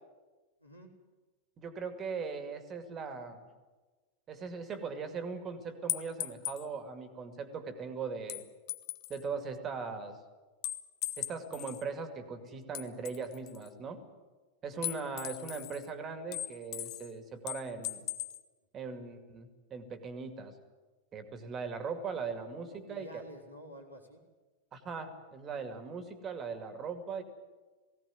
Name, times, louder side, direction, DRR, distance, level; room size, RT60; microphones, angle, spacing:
voice 1, 1.6-3.5 4.3-8.4 9.1-10.2 11.2-14.0 14.6-18.1 18.7-20.6 21.1-23.2 24.7-27.2, right 5 dB, 25° right, 8 dB, 2.3 m, -39 dB
sound 1, 5.9-6.7 8.3-9.2 10.6-11.8 12.7-13.7 14.8-15.9 16.3-17.1 17.5-18.4, left 14 dB, 40° left, 1.0 m, -38 dB
voice 2, 22.6-24.2, equal, 85° left, -1 dB, 3.6 m, -50 dB
19.0 x 17.0 x 9.4 m, 1.3 s
figure-of-eight pair, 90°, 0 cm